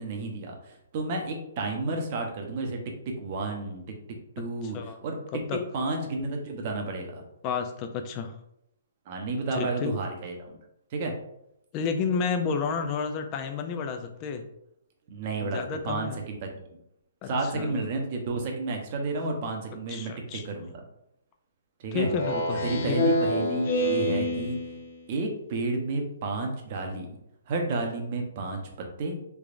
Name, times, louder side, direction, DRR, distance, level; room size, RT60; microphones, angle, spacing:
voice 1, 0.0-3.8 4.4-5.2 5.7-7.2 9.1-10.6 10.9-11.1 15.1-16.4 17.3-20.7 21.8-22.1 22.6-24.6 25.1-27.2 27.5-29.2, right 3 dB, 40° right, 2 dB, 0.7 m, -31 dB
voice 2, 4.4-5.0 5.5-5.6 7.4-8.3 9.5-9.9 11.7-14.5 15.4-16.2 17.2-17.9 19.9-20.4 21.9-23.0, left 5 dB, 30° left, 6 dB, 0.4 m, -31 dB
Speech synthesizer, 22.0-25.0, left 1 dB, 55° left, 0.7 m, -27 dB
3.4 x 3.4 x 2.5 m, 0.79 s
hypercardioid pair, 150°, 0 cm